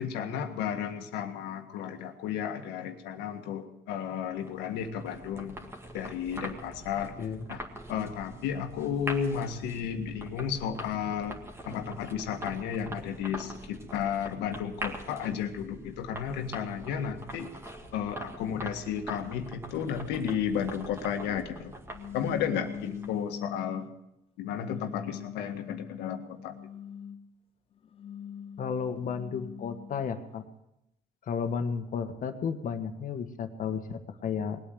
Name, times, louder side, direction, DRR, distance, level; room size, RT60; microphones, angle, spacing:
voice 1, 0.0-5.6 5.9-7.6 7.9-17.5 17.9-21.7 22.1-23.9 24.4-26.5, left 8 dB, 90° left, 6 dB, 1.7 m, -33 dB
sound 1, 4.3-23.3, right 1 dB, 15° right, 2.1 m, -44 dB
sound 2, 21.9-24.0 24.6-27.3 27.8-30.1, left 8 dB, 35° left, 0.7 m, -42 dB
voice 2, 28.6-30.4 31.3-34.6, left 6 dB, 50° left, 7 dB, 1.5 m, -33 dB
19.5 x 8.7 x 7.8 m, 0.86 s
cardioid pair, 110°, 17 cm